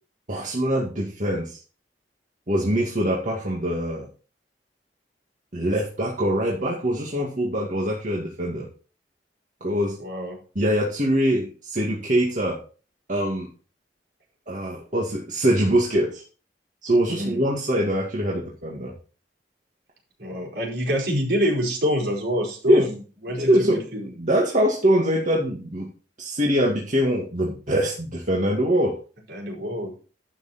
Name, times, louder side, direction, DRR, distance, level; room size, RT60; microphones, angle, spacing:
voice 1, 0.3-1.6 2.5-4.1 5.5-8.7 9.6-9.9 10.6-12.6 13.1-13.5 14.5-16.2 16.8-18.9 22.7-22.9 23.4-23.8 24.2-25.8 26.2-28.9, equal, 45° right, -3 dB, 2.1 m, -23 dB
voice 2, 10.0-10.4 17.1-17.4 20.2-22.9 23.2-24.1 29.3-29.9, equal, 65° right, -2 dB, 4.8 m, -26 dB
11.5 x 7.0 x 4.3 m, 0.37 s
head